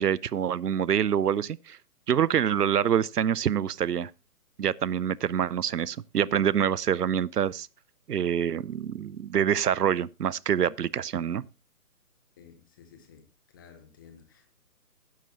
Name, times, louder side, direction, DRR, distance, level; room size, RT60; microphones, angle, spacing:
voice 1, 0.0-1.8 2.1-4.1 4.6-7.7 8.1-11.4, right 9 dB, 85° right, 0.6 m, -26 dB
voice 2, 12.4-13.2 13.5-14.6, left 7 dB, 15° left, 0.9 m, -53 dB
11.5 x 10.5 x 2.8 m
figure-of-eight pair, 150°, 46 cm